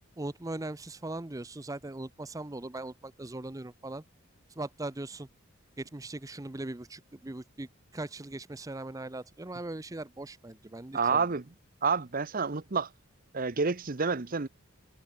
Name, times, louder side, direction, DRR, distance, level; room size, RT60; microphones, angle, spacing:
voice 1, 0.2-4.0 4.6-5.3 5.8-11.3, right 2 dB, 15° right, 0.6 m, -39 dB
voice 2, 10.9-11.4 11.8-12.9 13.3-14.5, right 5 dB, 40° right, 0.8 m, -28 dB
head